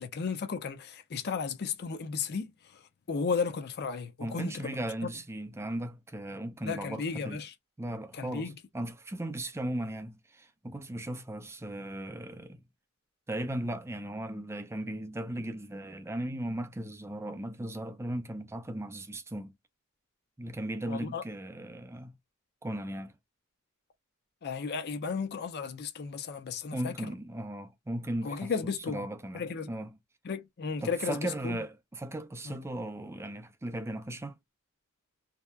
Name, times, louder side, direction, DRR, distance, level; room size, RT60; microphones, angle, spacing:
voice 1, 0.0-2.5 3.1-4.7 5.0-5.1 6.6-7.5 8.1-8.5 20.9-21.2 24.4-26.9 28.2-29.0 29.3-29.7 30.2-31.6 32.4-32.5, left 5 dB, 50° left, 0.5 m, -34 dB
voice 2, 4.2-7.4 7.8-12.6 13.3-19.5 20.4-22.1 22.6-23.1 26.7-29.9 30.8-34.4, right 1 dB, 10° right, 0.4 m, -37 dB
2.8 x 2.2 x 2.3 m
head